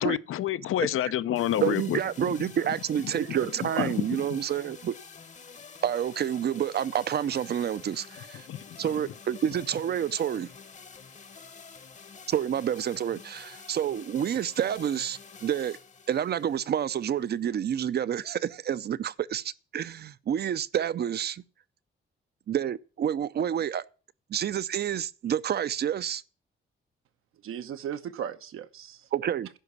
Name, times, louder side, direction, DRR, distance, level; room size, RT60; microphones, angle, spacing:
voice 1, 0.0-2.0 2.3-2.4 3.8-4.2 8.5-8.9, left 12 dB, 80° left, 0.6 m, -28 dB
sound 1, 1.4-17.4, left 5 dB, 35° left, 0.9 m, -48 dB
voice 2, 1.6-4.9 5.8-8.5 8.8-10.5 12.3-15.8 16.1-21.4 22.5-23.8 24.3-26.2 29.1-29.5, right 9 dB, 50° right, 0.5 m, -29 dB
voice 3, 3.2-3.9 27.4-29.0, right 9 dB, 85° right, 0.9 m, -35 dB
11.0 x 4.9 x 8.1 m
cardioid pair, 105°, 21 cm